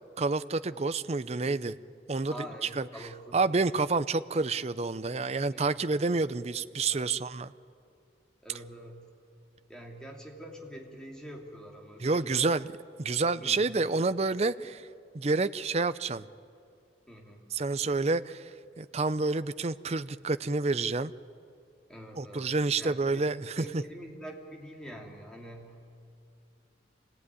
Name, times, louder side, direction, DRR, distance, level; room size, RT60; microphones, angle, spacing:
voice 1, 0.2-1.8 2.1-2.4 2.8-2.9 3.3-7.5 12.0-12.6 13.0-14.8 15.1-16.2 17.5-18.5 18.8-21.1 22.2-23.7, right 3 dB, 35° right, 13 dB, 0.5 m, -28 dB
voice 2, 2.3-3.4 5.5-5.7 6.9-7.1 8.4-9.2 9.7-12.5 13.4-13.7 17.1-17.5 21.9-23.3 23.6-25.9, equal, 5° left, 0 dB, 2.9 m, -45 dB
26.0 x 17.5 x 9.7 m, 2.4 s
head